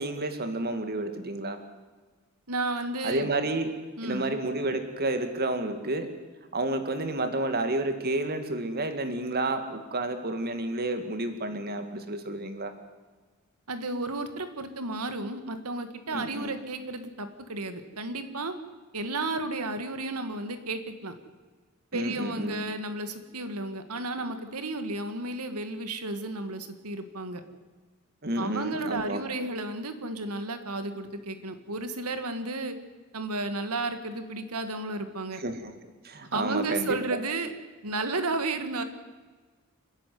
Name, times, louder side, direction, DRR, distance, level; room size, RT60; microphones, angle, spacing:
voice 1, 0.0-1.6 3.0-3.7 4.0-6.1 6.5-12.7 16.1-16.6 21.9-22.6 28.2-29.2 35.3-35.7 36.0-37.2, right 2 dB, 45° right, 8 dB, 2.2 m, -30 dB
voice 2, 2.5-3.3 4.0-4.4 13.7-18.5 18.9-21.1 21.9-27.4 28.4-32.8 33.1-35.4 36.3-37.5 37.8-38.8, right 2 dB, 85° right, 9 dB, 2.1 m, -33 dB
28.5 x 10.5 x 9.5 m, 1.4 s
head